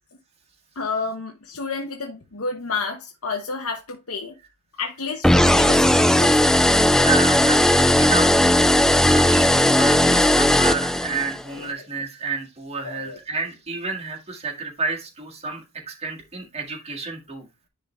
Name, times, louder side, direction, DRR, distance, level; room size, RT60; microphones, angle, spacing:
voice 1, 0.8-4.4 4.8-6.5 11.5-11.7 12.8-13.2, left 4 dB, 75° left, 1.0 m, -30 dB
sound 1, 5.2-11.4, left 1 dB, ahead, 0.4 m, -17 dB
voice 2, 6.9-8.3 9.1-15.6 15.9-17.4, right 4 dB, 30° right, 1.8 m, -30 dB
10.0 x 3.8 x 3.2 m
head